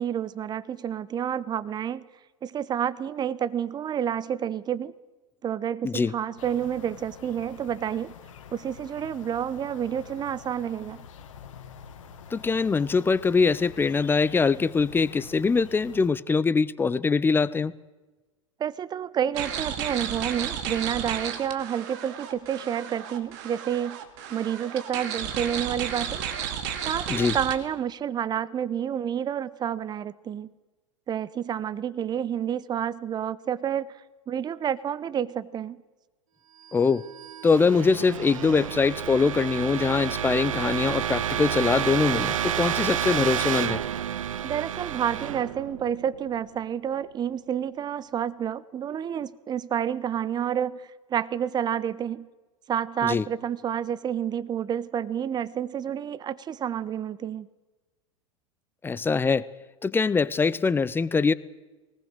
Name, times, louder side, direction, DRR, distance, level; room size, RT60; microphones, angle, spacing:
voice 1, 0.0-2.1 2.4-4.9 5.4-8.1 8.5-11.0 18.6-24.0 24.3-26.2 26.8-30.5 31.1-33.9 34.3-35.8 44.4-52.3 52.7-57.5, right 9 dB, 25° right, 18 dB, 0.8 m, -29 dB
sound 1, 6.4-16.1, left 6 dB, 65° left, 1.9 m, -46 dB
voice 2, 12.3-17.7 27.1-27.4 36.7-37.0 37.4-43.8 53.0-53.2 58.8-59.5 59.8-61.3, left 4 dB, 10° left, 18 dB, 0.6 m, -23 dB
sound 2, 19.3-27.5, right 8 dB, 50° right, 2.4 m, -33 dB
sound 3, 36.8-46.6, right 10 dB, 70° right, 0.7 m, -30 dB
21.0 x 19.0 x 6.5 m, 1.2 s
figure-of-eight pair, 90°, 17 cm